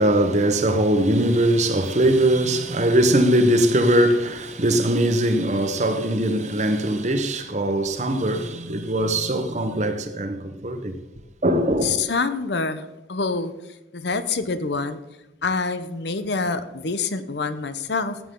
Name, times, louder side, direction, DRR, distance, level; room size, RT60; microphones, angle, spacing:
voice 1, 0.0-11.0 11.4-12.0, right 1 dB, 40° right, 1.0 m, -21 dB
voice 2, 11.8-13.5 13.9-15.0 15.4-18.2, left 4 dB, 70° left, 0.8 m, -26 dB
15.0 x 8.5 x 3.8 m
head